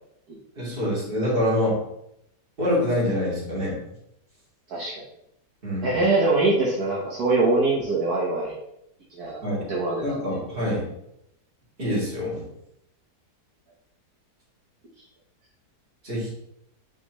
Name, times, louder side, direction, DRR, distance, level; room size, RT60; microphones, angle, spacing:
voice 1, 0.6-1.8 2.6-3.8 5.6-5.9 9.4-9.7 10.0-10.9 11.8-12.4 16.0-16.3, left 1 dB, 30° right, -6 dB, 2.6 m, -25 dB
voice 2, 4.7-5.0 5.8-8.6 9.1-9.4 9.7-10.2, right 2 dB, 65° right, -5 dB, 1.6 m, -23 dB
9.0 x 3.7 x 3.1 m, 0.78 s
omnidirectional pair, 1.8 m